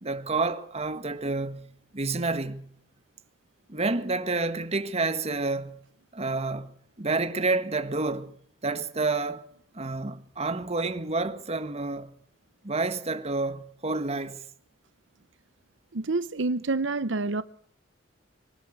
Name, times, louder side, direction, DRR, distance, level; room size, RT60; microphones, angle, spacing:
voice 1, 0.0-2.7 3.7-5.8 6.1-8.3 8.6-9.5 9.7-12.1 12.6-14.4, right 3 dB, 35° right, 1.6 m, -29 dB
voice 2, 15.9-17.4, right 3 dB, 75° right, 0.8 m, -27 dB
25.5 x 13.0 x 7.9 m
head